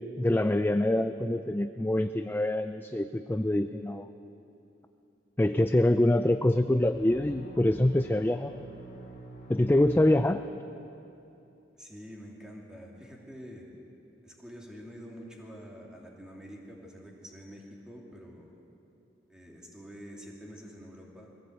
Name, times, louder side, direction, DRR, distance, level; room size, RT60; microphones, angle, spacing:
voice 1, 0.0-4.1 5.4-8.5 9.5-10.4, left 1 dB, 10° left, 9 dB, 0.4 m, -25 dB
sound 1, 6.9-10.7, equal, 45° left, 2.5 m, -47 dB
voice 2, 11.8-13.7 14.2-18.6 19.3-21.4, equal, 5° right, -2 dB, 2.9 m, -47 dB
22.0 x 16.0 x 8.1 m, 2.8 s
head